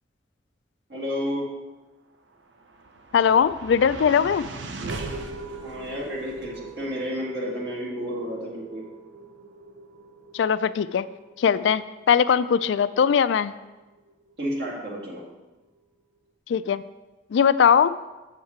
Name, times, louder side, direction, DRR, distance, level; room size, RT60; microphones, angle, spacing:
voice 1, 0.9-1.5 5.6-8.8 14.4-15.2, equal, 60° right, -4 dB, 2.0 m, -31 dB
sound 1, 2.3-14.7, right 3 dB, 80° right, 0.7 m, -40 dB
voice 2, 3.1-4.4 10.3-11.1 11.4-13.5 16.5-16.8 17.3-17.9, left 7 dB, 75° left, 15 dB, 0.3 m, -20 dB
7.4 x 7.3 x 4.3 m, 1.1 s
head